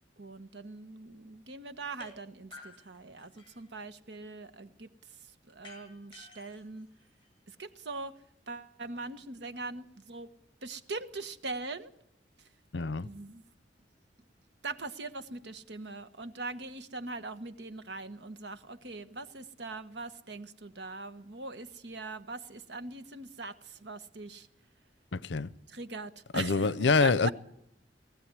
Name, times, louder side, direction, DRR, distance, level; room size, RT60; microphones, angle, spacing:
voice 1, 0.2-6.9 7.5-8.1 8.5-10.3 10.6-11.9 12.4-12.5 13.0-13.5 14.6-24.5 25.7-26.7 27.0-27.3, right 3 dB, 75° right, 1.3 m, -41 dB
sound 1, 2.0-2.1 2.5-3.7 5.6-7.6, left 3 dB, 30° left, 7.4 m, -53 dB
voice 2, 12.7-13.1 25.1-25.5 26.3-27.3, left 4 dB, 90° left, 0.7 m, -26 dB
20.0 x 15.0 x 9.7 m
head